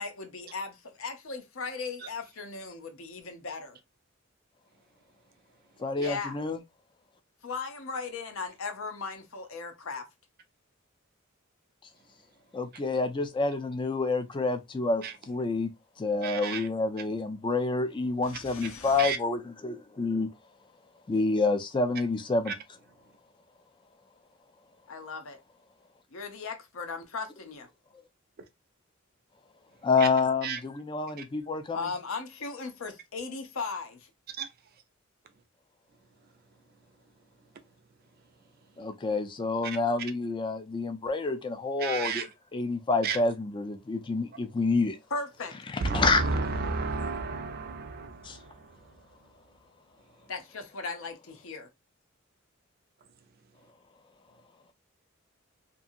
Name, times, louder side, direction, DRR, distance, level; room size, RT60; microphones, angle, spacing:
voice 1, 0.0-3.8 6.0-6.4 7.4-10.1 18.2-19.1 24.9-25.4 26.1-27.7 31.7-34.1 45.1-45.6 50.3-51.7, left 4 dB, 70° left, 0.7 m, -37 dB
voice 2, 5.8-6.6 12.5-15.7 16.0-20.3 21.1-22.5 29.8-31.9 38.8-45.0 45.7-46.5 48.2-48.4, left 3 dB, 25° left, 0.4 m, -28 dB
voice 3, 16.2-16.7 19.0-19.2 30.4-30.6 34.4-34.5 39.6-39.8 41.8-42.2 43.0-43.2 45.8-48.5, right 4 dB, 45° right, 0.4 m, -31 dB
2.7 x 2.7 x 2.5 m
head